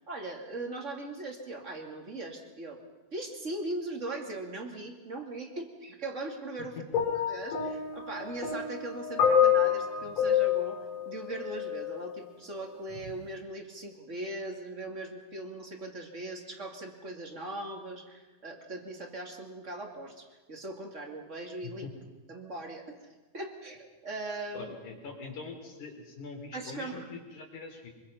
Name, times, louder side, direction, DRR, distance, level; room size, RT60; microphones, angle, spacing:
voice 1, 0.1-2.8 3.1-6.8 7.1-21.9 22.3-23.1 23.3-24.7 26.5-27.1, right 2 dB, 25° right, 3 dB, 1.9 m, -39 dB
sound 1, 6.9-12.0 12.9-13.1, left 8 dB, 35° left, 4.5 m, -28 dB
voice 2, 24.5-27.9, left 4 dB, 50° left, 2 dB, 5.0 m, -43 dB
24.5 x 23.5 x 5.7 m, 1.2 s
omnidirectional pair, 4.5 m